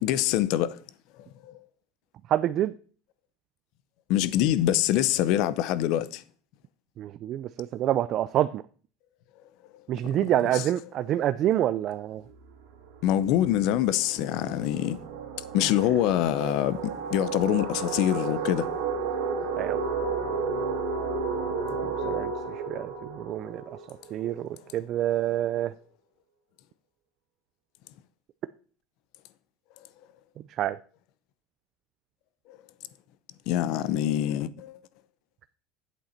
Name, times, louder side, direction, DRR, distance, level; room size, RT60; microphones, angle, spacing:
voice 1, 0.0-0.8 1.4-1.5 4.1-6.2 10.1-10.2 10.5-10.7 13.0-15.0 15.5-18.7 32.5-32.6 33.5-34.8, left 12 dB, 55° left, 0.5 m, -25 dB
voice 2, 2.3-2.7 7.0-8.6 9.9-12.2 15.6-15.7 19.6-19.8 22.0-23.6 23.9-25.7 30.6-30.8, right 12 dB, 35° right, 0.3 m, -27 dB
sound 1, 12.3-12.5 12.9-24.4, right 5 dB, 75° right, 2.0 m, -32 dB
8.3 x 7.8 x 4.3 m
cardioid pair, 165°, 0 cm